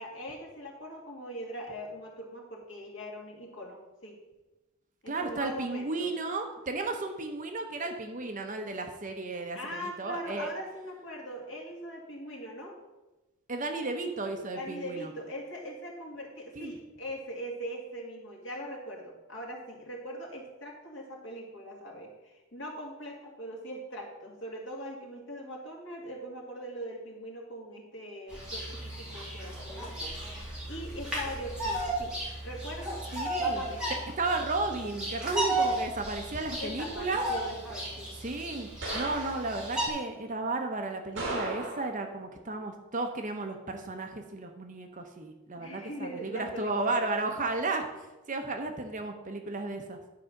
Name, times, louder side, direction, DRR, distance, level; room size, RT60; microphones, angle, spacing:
voice 1, 0.0-4.2 5.0-6.1 9.5-12.8 14.5-32.1 32.4-33.0 33.4-34.0 36.6-38.1 45.6-47.1, equal, 55° left, -1 dB, 2.3 m, -41 dB
voice 2, 5.1-10.5 13.5-15.1 16.6-16.7 33.1-33.6 34.2-37.2 38.2-47.9 48.3-50.0, right 3 dB, 35° right, 5 dB, 0.8 m, -34 dB
Bird vocalization bird call bird song, 28.3-39.9, right 1 dB, 5° right, 2.6 m, -34 dB
sound 1, 35.5-35.9 36.3-36.6 38.8-39.6 41.2-42.1, right 2 dB, 55° right, 2.8 m, -37 dB
10.5 x 4.8 x 6.5 m, 1.1 s
head